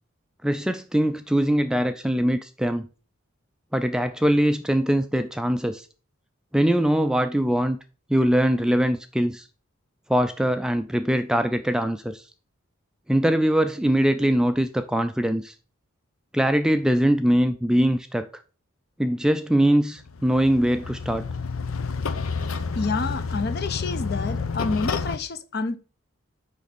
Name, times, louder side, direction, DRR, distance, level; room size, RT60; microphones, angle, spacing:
voice 1, 0.4-2.9 3.7-5.9 6.5-7.8 8.1-9.5 10.1-12.2 13.1-15.5 16.3-18.3 19.0-21.3, equal, 5° right, 0.3 m, -22 dB
sound 1, 20.0-25.2, left 4 dB, 85° left, 0.7 m, -29 dB
voice 2, 22.7-25.8, left 4 dB, 50° left, 0.7 m, -28 dB
6.5 x 5.3 x 5.2 m
head